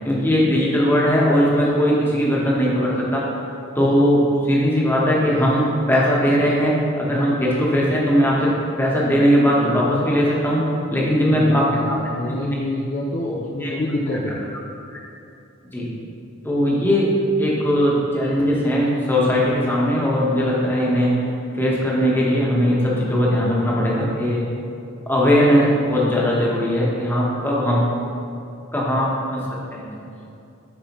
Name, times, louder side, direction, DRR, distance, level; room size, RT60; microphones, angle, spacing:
voice 1, 0.0-3.2 3.7-8.5 8.8-12.4 13.2-13.7 14.9-15.0 15.7-15.9 16.4-21.1 21.5-24.4 25.1-27.8 28.7-29.4 29.7-29.9, equal, 10° left, -5 dB, 1.1 m, -19 dB
voice 2, 11.0-14.4, left 1 dB, 35° left, -3 dB, 0.5 m, -27 dB
8.9 x 4.7 x 3.0 m, 2.7 s
head